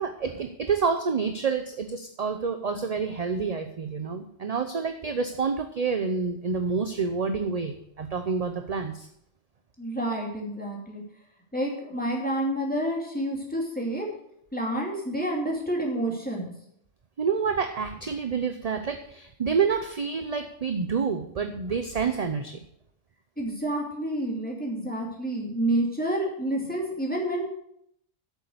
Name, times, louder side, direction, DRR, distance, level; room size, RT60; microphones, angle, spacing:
voice 1, 0.0-9.1 17.2-22.6, right 5 dB, 40° right, 7 dB, 0.7 m, -28 dB
voice 2, 9.8-11.0 11.5-14.1 14.5-16.5 23.4-27.5, right 1 dB, 5° left, -2 dB, 2.7 m, -29 dB
8.4 x 7.2 x 7.9 m, 0.73 s
omnidirectional pair, 1.2 m